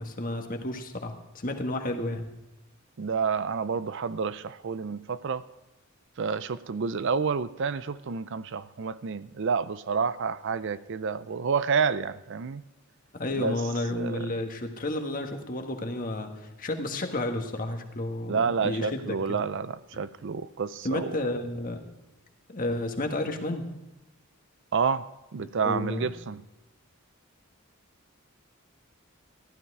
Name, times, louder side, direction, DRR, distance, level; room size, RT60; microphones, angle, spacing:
voice 1, 0.0-2.3 13.2-19.4 20.8-21.8 22.5-23.7 25.6-26.1, left 1 dB, 40° left, 1.5 m, -31 dB
voice 2, 3.0-5.4 6.2-12.6 13.3-13.6 13.9-14.3 18.3-21.1 24.7-25.1 25.3-26.4, right 5 dB, 55° right, 0.5 m, -29 dB
14.5 x 12.0 x 4.7 m
head